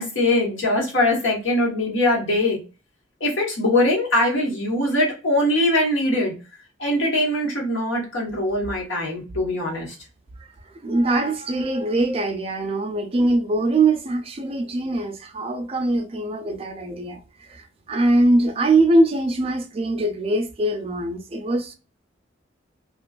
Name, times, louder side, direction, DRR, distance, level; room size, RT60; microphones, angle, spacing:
voice 1, 0.0-2.6 3.2-6.3 6.8-9.9, left 1 dB, 90° left, 1.1 m, -22 dB
voice 2, 10.8-21.7, right 2 dB, 30° right, 0.4 m, -22 dB
2.4 x 2.3 x 2.3 m
head